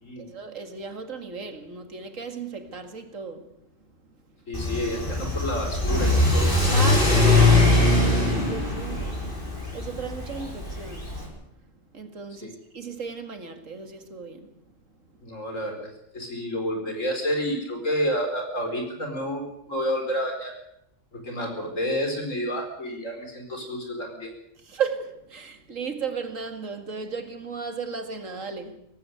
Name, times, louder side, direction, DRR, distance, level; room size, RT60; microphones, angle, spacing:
voice 1, 0.2-3.6 6.7-9.2 9.7-11.3 11.9-14.5 24.6-28.8, right 5 dB, 85° right, 2.5 m, -35 dB
voice 2, 4.5-6.5 12.4-12.5 15.2-20.6 21.1-24.3, equal, 80° left, 5.1 m, -30 dB
Car / Accelerating revving vroom, 4.5-11.3, left 2 dB, 45° left, 5.8 m, -21 dB
17.5 x 16.0 x 9.2 m
omnidirectional pair, 1.3 m